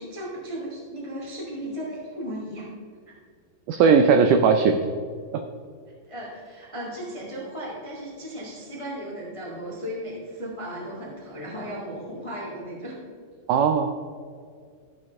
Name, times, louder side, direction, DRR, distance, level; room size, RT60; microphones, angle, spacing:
voice 1, 0.0-2.7 6.0-12.9, equal, 20° left, -4 dB, 0.8 m, -35 dB
voice 2, 3.7-4.8 5.3-5.4 13.5-13.9, right 5 dB, 85° right, 6 dB, 1.8 m, -18 dB
13.5 x 6.7 x 3.6 m, 2.1 s
omnidirectional pair, 4.2 m